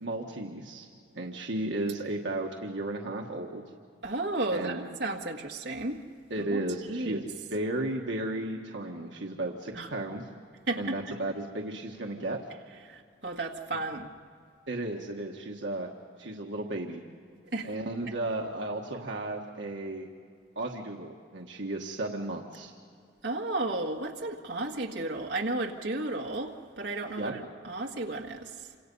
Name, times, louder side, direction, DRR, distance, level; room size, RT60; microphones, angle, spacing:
voice 1, 0.0-0.9 1.1-3.6 4.5-4.9 6.3-10.3 10.8-12.4 14.7-15.9 16.2-17.0 17.6-20.1 20.5-22.7 27.2-27.4, right 2 dB, 75° right, 1 dB, 1.5 m, -34 dB
voice 2, 4.0-6.0 6.4-6.6 6.9-7.2 9.7-9.9 10.7-11.2 12.9-14.1 17.5-17.7 23.2-28.5, right 2 dB, 60° right, 1 dB, 1.8 m, -33 dB
28.0 x 26.0 x 5.5 m, 2.2 s
head